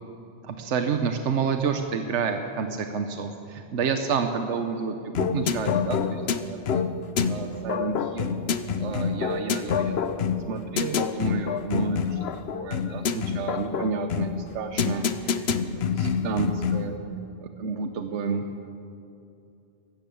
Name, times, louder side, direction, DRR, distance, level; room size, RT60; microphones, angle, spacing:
voice 1, 0.4-6.2 6.5-6.8 7.3-8.4 8.8-9.9 10.5-12.2 12.6-15.5 16.0-16.9 17.4-18.4, right 5 dB, 80° right, 6 dB, 1.2 m, -30 dB
sound 1, 5.1-17.0, left 6 dB, 65° left, 0.9 m, -27 dB
14.0 x 12.0 x 8.5 m, 2.7 s
omnidirectional pair, 1.2 m